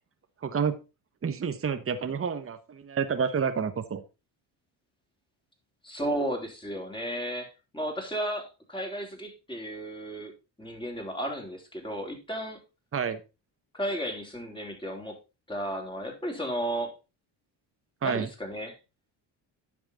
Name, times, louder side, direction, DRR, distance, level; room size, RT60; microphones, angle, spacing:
voice 1, 0.4-0.8 1.2-4.0 12.9-13.2 18.0-18.3, right 6 dB, 30° right, 9 dB, 1.1 m, -29 dB
voice 2, 5.8-10.3 10.6-12.6 13.7-15.2 15.5-16.9 18.0-18.8, right 1 dB, 10° left, 2 dB, 3.7 m, -34 dB
10.5 x 6.1 x 4.1 m, 0.29 s
cardioid pair, 80°, 45 cm